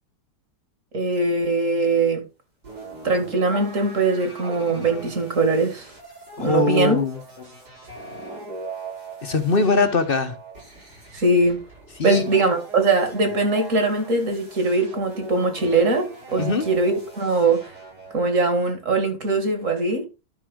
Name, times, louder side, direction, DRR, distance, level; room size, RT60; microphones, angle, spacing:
voice 1, 0.9-2.2 3.0-5.9 6.4-7.0 11.1-11.6 12.0-17.7 18.1-20.1, right 3 dB, 45° right, 2.4 m, -21 dB
sound 1, 2.6-18.3, right 3 dB, 80° right, 6.9 m, -40 dB
voice 2, 6.4-7.5 9.2-10.4 12.0-12.2 16.4-16.6, left 3 dB, 35° left, 1.1 m, -22 dB
12.0 x 5.7 x 3.7 m
omnidirectional pair, 1.9 m